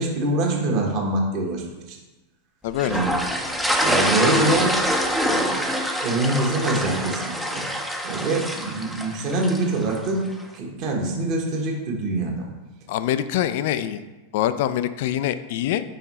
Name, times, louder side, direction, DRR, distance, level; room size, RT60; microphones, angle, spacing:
voice 1, 0.0-2.0 2.8-3.1 3.8-4.8 5.2-7.6 8.0-10.3 10.5-12.5, right 2 dB, 40° right, 0 dB, 1.3 m, -25 dB
voice 2, 2.6-3.0 4.2-4.6 12.9-14.0 14.3-15.8, left 11 dB, 50° left, 12 dB, 0.3 m, -25 dB
sound 1, 2.8-10.1, equal, ahead, 0.6 m, -25 dB
5.7 x 4.5 x 4.1 m, 1.1 s
figure-of-eight pair, 90°, 0 cm